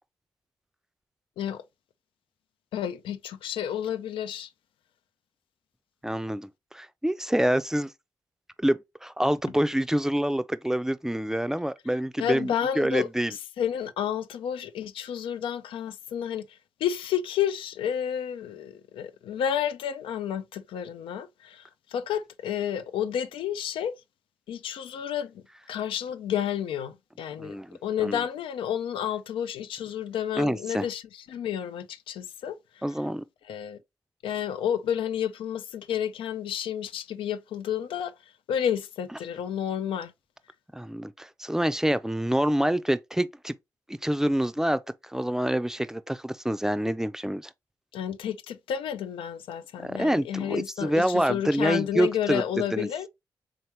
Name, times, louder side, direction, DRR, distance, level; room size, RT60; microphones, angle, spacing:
voice 1, 2.7-4.5 12.2-24.0 24.5-32.8 33.4-33.8 34.2-38.2 38.5-40.1 47.9-53.1, left 9 dB, 85° left, 0.4 m, -31 dB
voice 2, 6.0-7.9 8.6-13.3 27.4-28.2 30.4-30.8 32.8-33.2 40.7-43.5 43.9-44.8 45.1-47.5 49.8-52.9, right 1 dB, 5° right, 0.4 m, -27 dB
3.5 x 2.9 x 3.2 m
supercardioid pair, 50°, 9 cm